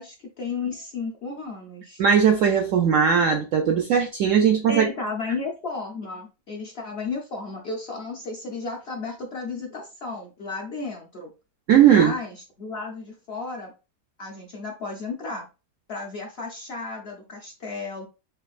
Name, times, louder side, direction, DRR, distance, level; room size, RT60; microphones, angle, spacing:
voice 1, 0.0-2.0 4.7-11.3 11.8-13.7 14.2-15.5 15.9-18.1, left 3 dB, 65° left, 0.6 m, -33 dB
voice 2, 2.0-4.8 11.7-12.1, right 8 dB, 75° right, 0.7 m, -18 dB
6.3 x 2.5 x 2.4 m
omnidirectional pair, 1.8 m